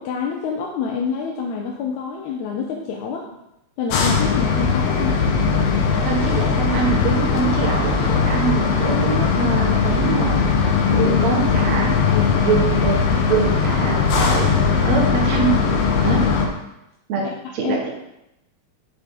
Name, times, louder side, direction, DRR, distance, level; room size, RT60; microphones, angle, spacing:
voice 1, 0.0-3.3 3.8-5.2 10.9-11.3 12.1-12.6 17.2-17.9, left 6 dB, 85° left, 0 dB, 2.0 m, -27 dB
sound 1, 3.9-16.5, left 5 dB, 70° left, 1.8 m, -19 dB
voice 2, 6.0-10.4 10.9-12.0 12.4-13.0 13.3-14.5 14.8-15.6 16.0-16.3 17.1-17.9, right 6 dB, 70° right, -1 dB, 2.5 m, -24 dB
7.4 x 4.8 x 4.4 m, 0.87 s
omnidirectional pair, 3.4 m